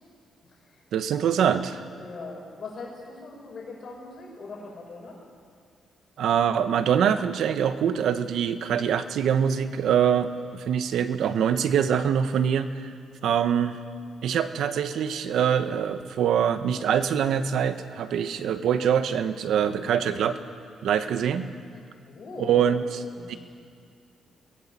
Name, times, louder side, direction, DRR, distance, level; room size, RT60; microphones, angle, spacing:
voice 1, 0.9-1.8 6.2-12.9 13.2-13.8 14.2-20.4 20.8-21.5 22.4-23.0 23.3-23.4, right 8 dB, 75° right, 10 dB, 1.2 m, -24 dB
voice 2, 1.9-5.2 21.7-22.7 23.2-23.4, left 3 dB, 45° left, -2 dB, 7.4 m, -41 dB
24.0 x 18.0 x 7.5 m, 2.2 s
cardioid pair, 115°, 0 cm